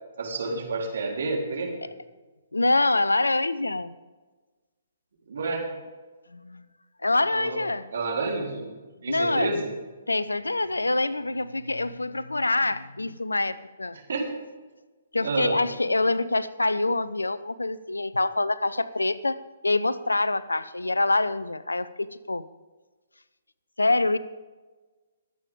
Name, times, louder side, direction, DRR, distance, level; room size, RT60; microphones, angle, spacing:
voice 1, 0.2-1.9 5.3-5.7 7.3-7.6 7.9-8.7 9.0-9.7 13.9-14.3 15.2-15.6, right 3 dB, 65° right, -1 dB, 3.9 m, -29 dB
voice 2, 2.5-4.0 6.3-6.7 7.0-7.9 9.1-9.5 10.1-14.0 15.1-22.5 23.8-24.2, left 2 dB, 85° left, 16 dB, 0.7 m, -25 dB
22.0 x 8.6 x 3.7 m, 1.3 s
figure-of-eight pair, 130°, 0 cm